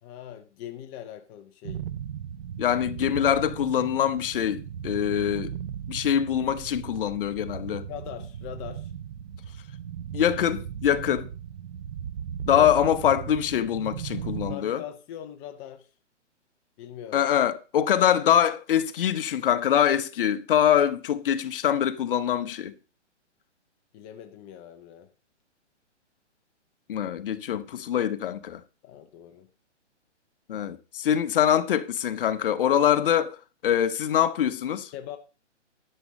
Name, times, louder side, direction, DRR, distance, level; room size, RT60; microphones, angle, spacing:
voice 1, 0.0-1.8 7.9-8.9 12.5-12.7 14.5-15.9 16.8-17.3 23.9-25.1 28.8-29.5 34.9-35.2, left 11 dB, 15° left, 0.5 m, -41 dB
sound 1, 1.6-14.6, right 9 dB, 50° right, 0.8 m, -37 dB
voice 2, 2.6-5.5 5.9-7.9 10.1-11.3 12.5-14.8 17.1-22.7 26.9-28.6 30.5-33.4 33.6-34.9, left 10 dB, 45° left, 1.0 m, -24 dB
12.5 x 7.5 x 4.1 m
hypercardioid pair, 140°, 36 cm